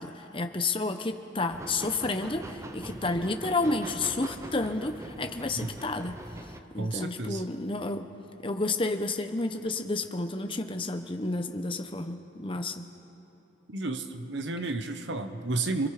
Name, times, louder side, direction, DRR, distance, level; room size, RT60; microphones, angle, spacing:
voice 1, 0.0-6.2 6.7-8.1 8.4-12.8, left 2 dB, 25° left, 7 dB, 0.9 m, -31 dB
sound 1, 1.5-6.6, right 1 dB, 15° right, 0.7 m, -42 dB
voice 2, 6.8-7.5 13.7-15.9, right 2 dB, 60° right, 8 dB, 1.1 m, -32 dB
27.5 x 22.0 x 5.1 m, 3.0 s
head